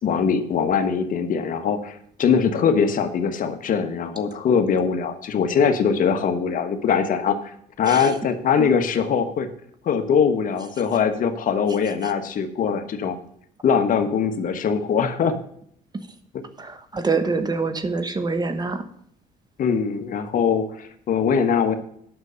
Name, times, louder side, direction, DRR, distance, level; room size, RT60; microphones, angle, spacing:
voice 1, 0.0-9.5 9.8-13.2 13.6-15.4 19.6-21.7, left 6 dB, 55° left, 7 dB, 1.3 m, -22 dB
voice 2, 16.6-18.8, right 4 dB, 25° right, 9 dB, 1.1 m, -25 dB
9.6 x 6.3 x 6.8 m, 0.67 s
cardioid pair, 110°, 17 cm